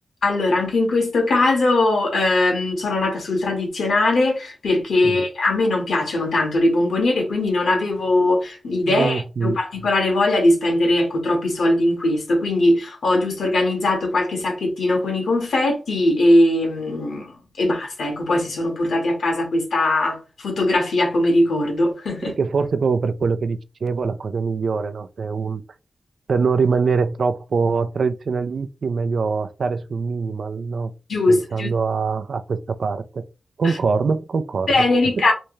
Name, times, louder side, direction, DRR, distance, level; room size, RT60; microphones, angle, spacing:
voice 1, 0.2-17.3 17.6-22.3 31.1-31.7 34.7-35.3, left 2 dB, 85° left, 1.5 m, -20 dB
voice 2, 8.9-9.6 22.2-25.6 26.3-30.9 31.3-33.2 33.6-34.8 35.2-35.3, right 5 dB, 75° right, 0.4 m, -23 dB
3.4 x 2.7 x 3.1 m
cardioid pair, 50°, 0 cm